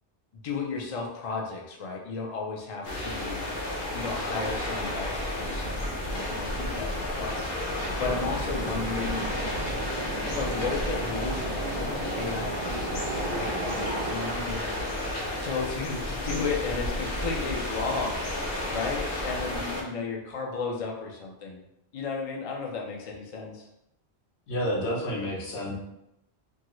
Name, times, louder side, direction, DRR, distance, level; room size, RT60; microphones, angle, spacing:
voice 1, 0.3-3.5 3.9-9.3 10.2-14.7 15.4-21.6 21.9-23.7, left 4 dB, 45° left, -1 dB, 0.5 m, -34 dB
sound 1, 2.8-19.8, left 1 dB, 65° left, 0.9 m, -32 dB
sound 2, 7.7-15.0, right 3 dB, 55° right, 0.3 m, -37 dB
voice 2, 24.5-25.8, equal, 85° left, -2 dB, 1.1 m, -29 dB
2.7 x 2.4 x 3.0 m, 0.84 s
omnidirectional pair, 1.1 m